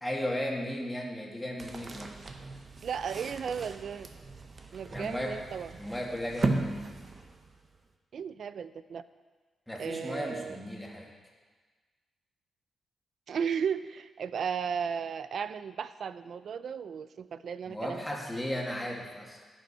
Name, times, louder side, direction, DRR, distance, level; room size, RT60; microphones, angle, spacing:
voice 1, 0.0-2.1 4.8-5.3 5.8-7.0 9.7-11.1 17.7-19.4, equal, 10° left, -1 dB, 2.1 m, -35 dB
sound 1, 1.6-7.8, right 3 dB, 40° right, 0.9 m, -37 dB
voice 2, 2.8-4.1 4.7-5.7 8.1-9.0 9.8-10.6 13.3-18.0, right 7 dB, 65° right, 14 dB, 0.4 m, -35 dB
15.5 x 6.1 x 4.3 m, 1.4 s
cardioid pair, 85°, 0 cm